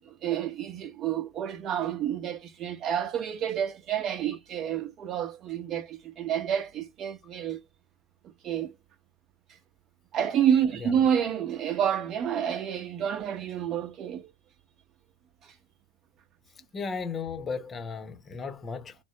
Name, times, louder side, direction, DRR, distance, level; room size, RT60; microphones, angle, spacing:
voice 1, 0.1-7.6 8.4-8.7 10.1-14.3, right 9 dB, 40° right, 0.8 m, -29 dB
voice 2, 16.7-19.0, left 5 dB, 25° left, 0.8 m, -35 dB
3.4 x 2.1 x 2.8 m
figure-of-eight pair, 80°, 0 cm